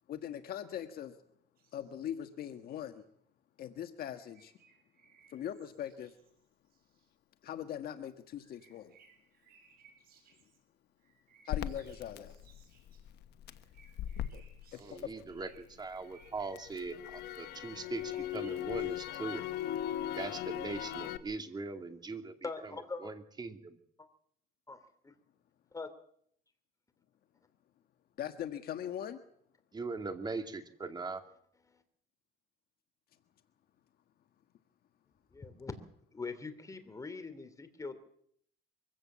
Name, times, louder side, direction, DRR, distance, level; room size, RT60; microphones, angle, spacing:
voice 1, 0.1-1.2 1.7-3.0 3.6-4.5 5.3-6.1 7.4-8.9 11.4-12.4 14.3-14.4 14.9-15.0 28.2-29.2, left 10 dB, 65° left, 8 dB, 1.5 m, -41 dB
sound 1, 1.6-3.0 4.1-6.4 6.7-7.1 8.3-10.6 11.0-13.0 13.5-16.8 17.1-19.0, right 6 dB, 60° right, 6.8 m, -65 dB
Crackle, 11.5-15.6 16.0-21.2, left 12 dB, 80° left, 1.3 m, -39 dB
voice 2, 14.8-19.4 20.2-22.7 23.0-23.8 29.7-31.2, right 3 dB, 25° right, 7 dB, 2.5 m, -40 dB
voice 3, 22.4-23.1 24.0-24.1 24.7-25.1 25.7-25.9 31.7-31.8 35.3-35.8 36.1-38.0, left 4 dB, 20° left, 9 dB, 3.0 m, -43 dB
23.5 x 16.0 x 7.5 m, 0.68 s
cardioid pair, 110°, 17 cm